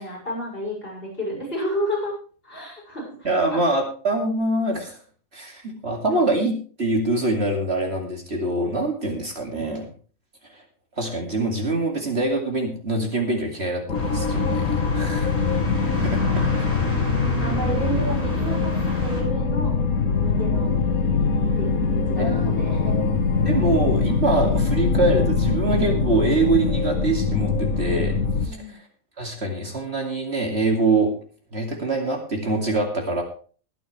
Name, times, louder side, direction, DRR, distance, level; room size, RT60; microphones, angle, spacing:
voice 1, 0.0-2.2 2.4-3.6 6.1-6.3 16.0-16.5 17.4-19.7 20.0-20.9 21.3-23.0 28.4-28.8, equal, 40° left, -3 dB, 6.9 m, -32 dB
voice 2, 3.2-5.0 5.3-9.9 11.0-15.3 15.8-16.7 22.2-22.5 23.5-28.1 29.2-31.1 31.5-33.2, right 2 dB, 50° right, 2 dB, 2.7 m, -24 dB
sound 1, 13.9-28.5, left 4 dB, 80° left, 1.8 m, -23 dB
sound 2, 13.9-19.2, equal, 10° left, 6.0 m, -29 dB
21.5 x 8.9 x 3.3 m, 0.40 s
omnidirectional pair, 1.5 m